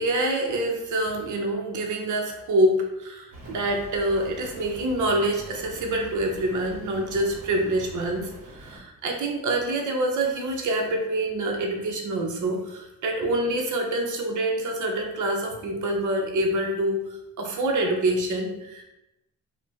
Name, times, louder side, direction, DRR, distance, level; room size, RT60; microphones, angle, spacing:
voice 1, 0.0-17.0 17.4-18.8, right 1 dB, 55° right, 1 dB, 0.7 m, -26 dB
Rain, 3.3-8.8, right 1 dB, 40° right, 1.1 m, -44 dB
2.4 x 2.2 x 3.9 m, 0.92 s
cardioid pair, 80°, 36 cm